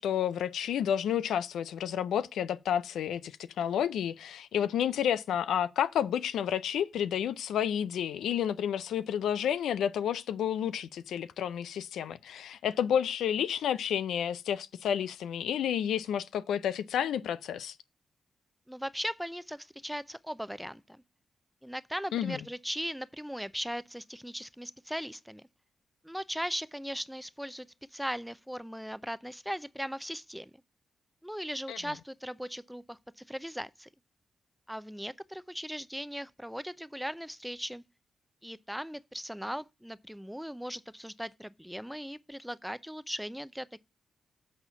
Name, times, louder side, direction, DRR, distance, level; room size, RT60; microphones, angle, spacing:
voice 1, 0.0-17.7 22.1-22.4 31.7-31.8, left 9 dB, 80° left, 0.4 m, -30 dB
voice 2, 18.7-21.0 21.6-25.4 26.0-27.7 27.9-30.5 31.2-33.9 34.7-37.8 38.4-43.8, equal, ahead, 0.6 m, -38 dB
8.2 x 4.3 x 6.8 m
supercardioid pair, 50°, 0 cm